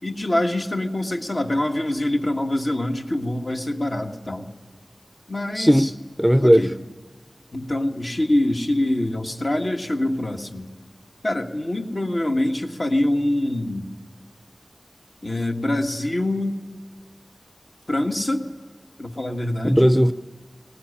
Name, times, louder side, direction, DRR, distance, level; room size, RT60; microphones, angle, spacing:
voice 1, 0.0-4.5 5.3-5.9 6.4-6.7 7.5-10.7 11.2-13.9 15.2-16.6 17.9-18.5 19.0-19.9, left 1 dB, 55° left, 1.8 m, -24 dB
voice 2, 5.6-6.7 19.6-20.1, equal, ahead, 0.6 m, -17 dB
19.0 x 18.5 x 10.0 m
wide cardioid pair, 45°, 0 cm